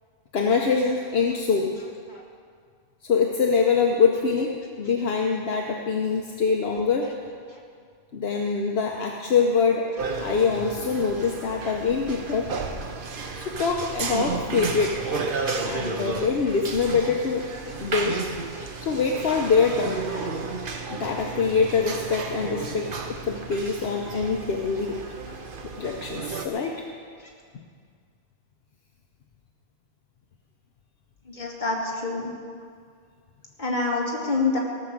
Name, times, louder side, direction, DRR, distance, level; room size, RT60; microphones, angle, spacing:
voice 1, 0.3-1.7 3.0-7.1 8.1-9.9 10.2-12.5 13.3-15.0 15.6-17.5 17.8-18.2 18.8-20.0 20.9-25.0 25.8-26.8, left 5 dB, 70° left, 1 dB, 1.1 m, -24 dB
sound 1, 10.0-26.5, right 4 dB, 55° right, 1.0 m, -33 dB
voice 2, 31.3-32.3 33.6-34.6, left 3 dB, 45° left, -3 dB, 2.3 m, -27 dB
17.0 x 6.4 x 7.3 m, 2.1 s
omnidirectional pair, 1.1 m